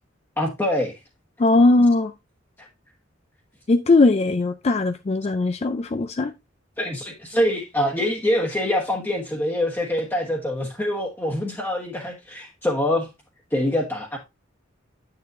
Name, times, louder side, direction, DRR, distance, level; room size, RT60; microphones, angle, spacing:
voice 1, 0.4-1.0 2.6-2.7 6.8-13.1 13.5-14.2, left 1 dB, 10° left, 1.2 m, -25 dB
voice 2, 1.4-2.1 3.7-6.3, left 2 dB, 35° left, 0.4 m, -19 dB
8.6 x 6.7 x 2.6 m
head